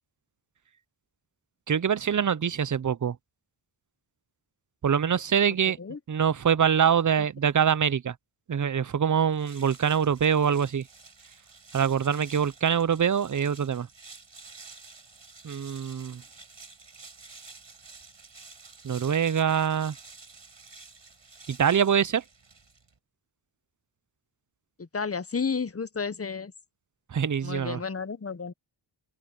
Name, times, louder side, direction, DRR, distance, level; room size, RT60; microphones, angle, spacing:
voice 1, 1.7-3.2 4.8-5.8 6.1-8.1 8.5-10.8 11.7-13.9 15.4-16.2 18.8-19.9 21.5-22.2 27.1-27.8, right 7 dB, 40° right, 0.5 m, -24 dB
sound 1, 9.3-23.0, right 4 dB, 65° right, 7.6 m, -50 dB
voice 2, 24.8-26.5 27.4-28.5, left 5 dB, 30° left, 0.8 m, -32 dB
open air
wide cardioid pair, 90°, 47 cm